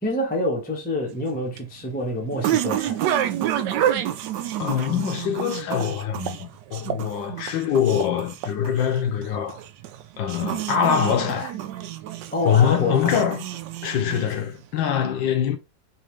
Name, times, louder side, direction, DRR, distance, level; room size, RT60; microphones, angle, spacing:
voice 1, 0.0-3.0 6.9-7.0 12.3-13.2, left 1 dB, 10° left, 0.6 m, -27 dB
sound 1, 1.1-14.7, right 11 dB, 75° right, 1.1 m, -29 dB
voice 2, 4.6-9.6 10.2-11.6 12.4-13.4 13.8-15.6, left 8 dB, 75° left, 1.4 m, -23 dB
4.2 x 2.8 x 3.1 m
omnidirectional pair, 2.1 m